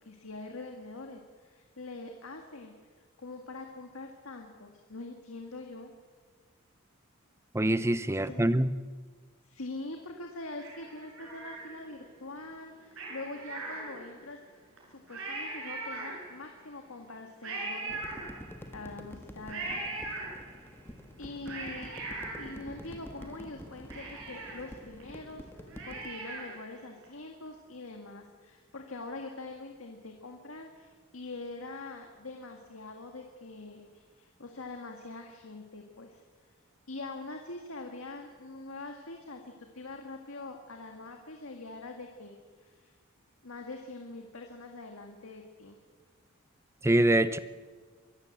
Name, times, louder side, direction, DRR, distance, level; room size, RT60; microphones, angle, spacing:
voice 1, 0.0-2.7 3.2-5.9 8.1-8.4 9.4-14.4 14.9-20.1 21.2-36.2 36.9-42.9 43.4-45.8, left 2 dB, 75° left, 3 dB, 1.9 m, -44 dB
voice 2, 7.5-8.7 46.8-47.4, right 1 dB, 15° right, 14 dB, 0.6 m, -24 dB
Cat, 10.6-12.1 12.9-14.3 14.8-14.9 15.1-16.6 17.4-18.8 19.5-20.8 21.2-23.2 23.6-23.7 23.9-26.7 27.0-27.1, right 2 dB, 70° right, 7.1 m, -40 dB
sound 1, 17.9-26.1, equal, 10° left, 1.4 m, -47 dB
24.0 x 14.5 x 8.1 m, 1.5 s
head